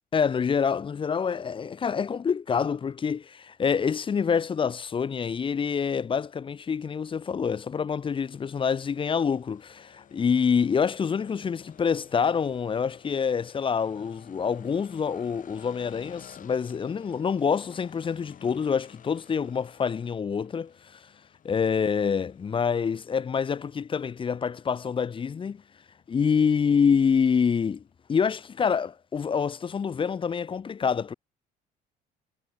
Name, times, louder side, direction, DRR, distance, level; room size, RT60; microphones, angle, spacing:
voice 1, 0.1-21.0 21.4-25.6 26.1-27.8 28.1-31.1, left 6 dB, 30° left, 0.9 m, -26 dB
sound 1, 8.0-27.9, left 9 dB, 50° left, 6.9 m, -54 dB
cardioid pair, 110°, 17 cm